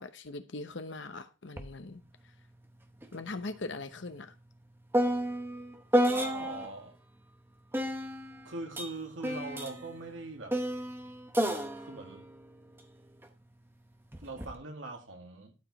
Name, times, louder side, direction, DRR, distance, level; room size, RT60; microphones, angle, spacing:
voice 1, 0.0-2.0 3.1-4.4, left 3 dB, 70° left, 0.9 m, -40 dB
sound 1, 1.6-1.7 2.0-6.8 7.7-13.3 14.1-14.5, equal, 10° right, 0.8 m, -32 dB
voice 2, 6.1-7.0 8.4-10.6 11.8-12.3 14.2-15.5, right 3 dB, 85° right, 2.1 m, -41 dB
12.5 x 4.9 x 4.1 m
head